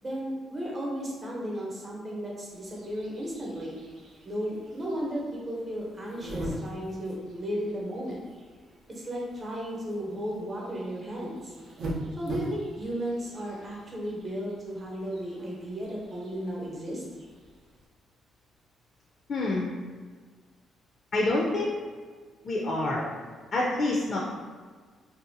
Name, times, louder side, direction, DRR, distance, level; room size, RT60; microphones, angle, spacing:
voice 1, 0.0-3.8 4.2-8.2 8.9-11.5 12.2-17.0, equal, 35° right, -3 dB, 0.7 m, -34 dB
sound 1, 2.5-17.9, right 1 dB, 70° right, 0.5 m, -43 dB
voice 2, 19.3-19.7 21.1-21.7 22.4-23.1 23.5-24.2, left 2 dB, 50° left, -3 dB, 0.4 m, -27 dB
2.6 x 2.3 x 2.6 m, 1.5 s
cardioid pair, 90°, 0 cm